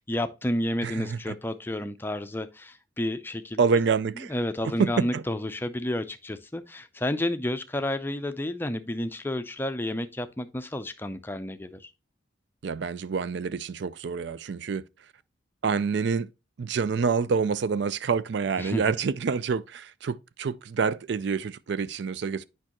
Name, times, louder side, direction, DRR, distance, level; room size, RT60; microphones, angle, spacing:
voice 1, 0.0-3.6 4.3-11.9 18.6-19.0, left 1 dB, 10° left, 0.5 m, -31 dB
voice 2, 0.8-1.3 3.6-4.3 4.8-5.2 12.6-14.8 15.6-16.3 16.6-22.4, right 5 dB, 60° right, 0.4 m, -27 dB
8.5 x 5.4 x 2.9 m
head